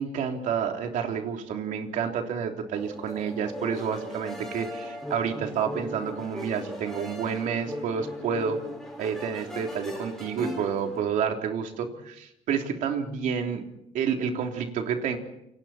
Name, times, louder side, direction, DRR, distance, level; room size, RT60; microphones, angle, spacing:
voice 1, 0.0-8.6 9.0-13.6 13.9-15.2, right 7 dB, 80° right, 3 dB, 3.4 m, -29 dB
sound 1, 2.8-11.0, left 1 dB, 5° left, 5.3 m, -39 dB
29.0 x 25.0 x 4.4 m, 0.79 s
cardioid pair, 155°, 13 cm